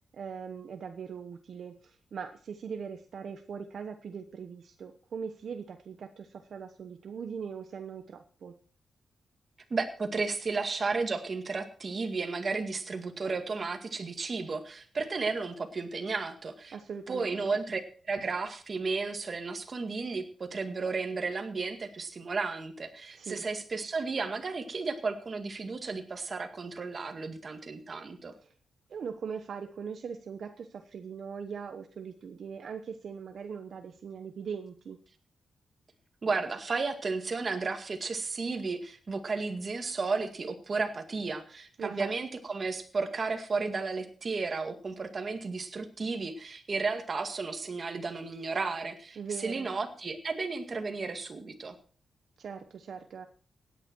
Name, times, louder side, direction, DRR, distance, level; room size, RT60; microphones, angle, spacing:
voice 1, 0.1-8.5 16.7-17.6 23.2-23.4 28.4-28.5 28.9-35.0 41.8-42.1 49.2-49.7 52.4-53.3, right 6 dB, 65° right, 7 dB, 1.0 m, -40 dB
voice 2, 9.7-16.7 17.1-17.8 18.1-28.3 36.2-51.8, right 4 dB, 40° right, 6 dB, 2.0 m, -33 dB
17.0 x 10.0 x 4.6 m, 0.43 s
wide cardioid pair, 130°, 0 cm